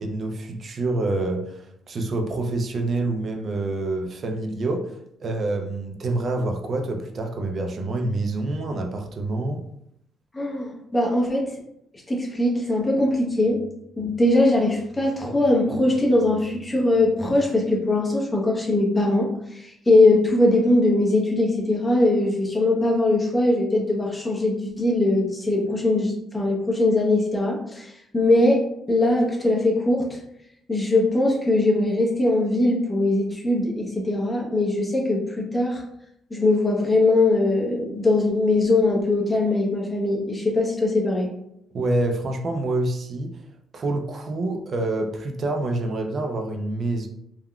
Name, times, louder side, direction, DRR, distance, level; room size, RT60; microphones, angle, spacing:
voice 1, 0.0-9.6 41.7-43.4 43.7-47.1, right 2 dB, 50° right, 4 dB, 0.4 m, -27 dB
voice 2, 10.3-11.6 12.1-13.6 14.0-30.2 30.7-35.8 36.3-41.3, left 2 dB, 20° left, -2 dB, 0.8 m, -21 dB
3.5 x 2.2 x 2.3 m, 0.77 s
cardioid pair, 90°, 0 cm